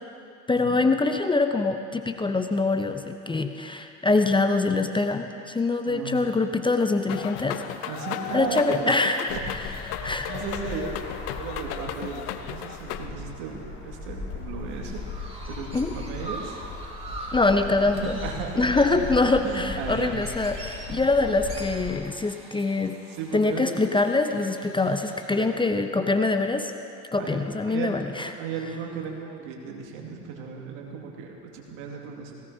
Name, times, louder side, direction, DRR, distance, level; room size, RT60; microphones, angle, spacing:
voice 1, 0.5-7.9 8.3-9.7 10.0-10.3 15.7-15.9 17.3-18.2 18.6-23.0 23.3-26.7 27.1-28.3, left 3 dB, 15° left, 7 dB, 0.7 m, -24 dB
voice 2, 5.9-6.2 7.9-8.9 9.3-9.9 10.3-11.1 11.3-15.0 15.4-15.7 15.9-16.6 18.0-18.6 18.9-19.1 19.4-20.2 20.9-21.1 23.1-23.8 25.3-25.5 27.2-32.3, right 6 dB, 65° right, 0 dB, 2.3 m, -35 dB
sound 1, 7.1-13.1, left 11 dB, 70° left, 0.8 m, -35 dB
sound 2, 9.3-22.0, left 3 dB, 35° left, 3.5 m, -38 dB
Chirp tweet, 14.7-25.3, right 2 dB, 15° right, 3.0 m, -43 dB
18.5 x 17.0 x 2.8 m, 2.6 s
hypercardioid pair, 70°, 35 cm